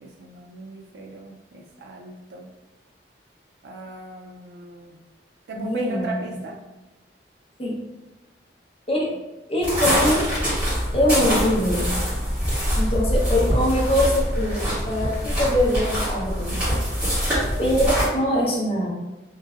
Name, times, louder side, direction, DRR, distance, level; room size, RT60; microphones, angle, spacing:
voice 1, 0.0-2.5 3.6-5.0 5.5-6.6 17.3-17.8, right 1 dB, 70° right, 1 dB, 0.4 m, -37 dB
voice 2, 5.5-6.4 7.6-7.8 8.9-9.1 9.5-10.3 10.9-11.9 12.8-16.6 17.6-18.9, left 1 dB, 35° left, -3 dB, 0.7 m, -23 dB
sound 1, 9.6-18.1, equal, 10° right, 1.5 m, -24 dB
3.2 x 2.6 x 2.3 m, 1.0 s
head